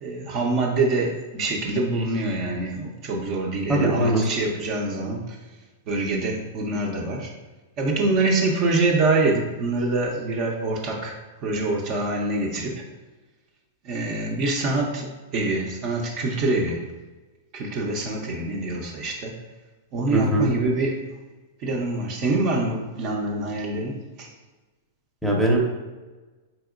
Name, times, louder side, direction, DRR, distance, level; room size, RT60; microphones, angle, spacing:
voice 1, 0.0-5.4 5.9-7.3 7.8-11.2 11.4-12.8 13.8-16.8 17.5-19.4 19.9-21.0 21.6-24.3, right 2 dB, 45° right, 0 dB, 0.6 m, -25 dB
voice 2, 3.7-4.2 20.1-20.5 25.2-25.6, right 1 dB, ahead, -2 dB, 0.7 m, -20 dB
4.1 x 2.8 x 2.4 m, 1.2 s
hypercardioid pair, 120°, 0 cm